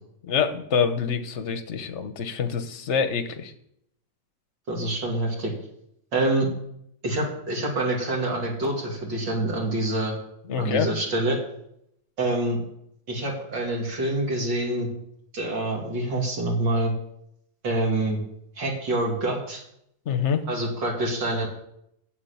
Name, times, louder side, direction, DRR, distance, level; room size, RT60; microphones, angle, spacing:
voice 1, 0.3-3.5 10.5-10.9 20.1-20.4, left 6 dB, 45° left, 9 dB, 1.2 m, -26 dB
voice 2, 4.7-5.5 6.1-6.5 7.0-10.2 10.6-11.4 12.2-12.6 13.1-14.9 15.3-16.9 17.6-18.2 18.6-19.6 20.5-21.5, right 2 dB, 70° right, -1 dB, 3.5 m, -26 dB
12.0 x 8.1 x 8.6 m, 0.75 s
omnidirectional pair, 2.1 m